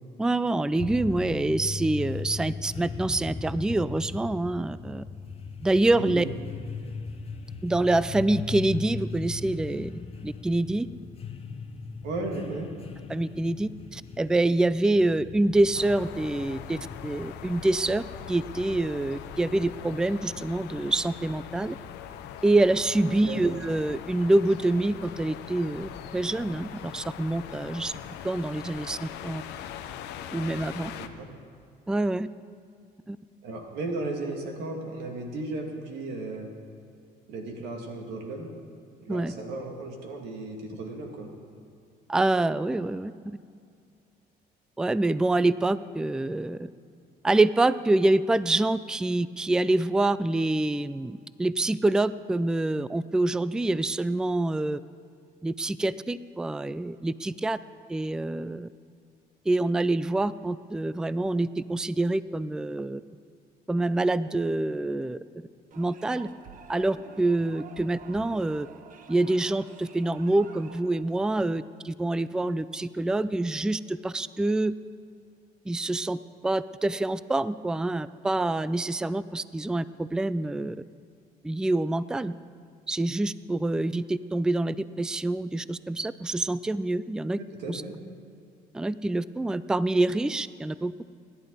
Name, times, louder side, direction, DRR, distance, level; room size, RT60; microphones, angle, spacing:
voice 1, 0.2-5.0 5.6-6.3 7.6-9.9 10.2-10.9 13.1-21.8 22.4-27.9 28.2-29.4 30.3-30.9 31.9-32.3 33.1-33.2 39.1-39.3 42.1-43.4 44.8-46.7 47.2-54.8 55.4-57.6 57.9-58.7 59.5-63.0 63.7-65.2 65.8-66.3 66.7-68.7 69.1-74.7 75.7-76.2 76.4-80.8 81.4-82.3 82.9-87.4 87.7-87.8 88.7-91.1, right 2 dB, 5° right, 16 dB, 0.3 m, -26 dB
sound 1, 0.8-17.6, left 4 dB, 35° left, 1.0 m, -38 dB
voice 2, 5.9-6.3 12.0-12.7 23.3-23.4 31.0-31.3 33.4-36.5 37.3-38.5 39.0-41.3 87.4-87.9, right 2 dB, 85° right, 2 dB, 2.3 m, -35 dB
sound 2, 15.7-31.1, left 9 dB, 90° left, 0.9 m, -41 dB
sound 3, 65.7-71.0, right 6 dB, 50° right, 1.1 m, -49 dB
26.0 x 11.0 x 4.0 m, 2.3 s
cardioid pair, 110°, 17 cm